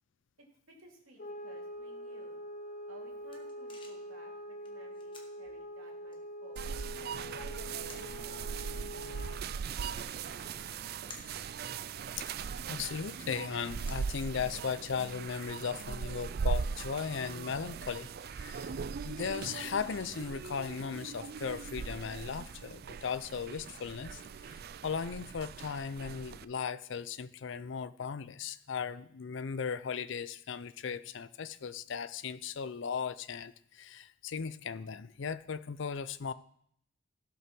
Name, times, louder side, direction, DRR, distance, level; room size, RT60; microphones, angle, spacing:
voice 1, 0.7-2.4 2.9-6.8 7.3-10.9, right 2 dB, 75° right, 0 dB, 2.8 m, -57 dB
sound 1, 1.2-9.5, equal, 40° left, 1.1 m, -44 dB
sound 2, 2.7-14.8, left 3 dB, 25° left, 1.4 m, -59 dB
sound 3, 6.6-26.4, right 6 dB, 45° right, 0.3 m, -40 dB
voice 2, 12.7-18.7 19.0-24.2 24.5-36.3, left 6 dB, 60° left, 14 dB, 0.5 m, -37 dB
16.0 x 5.6 x 6.1 m, 0.69 s
head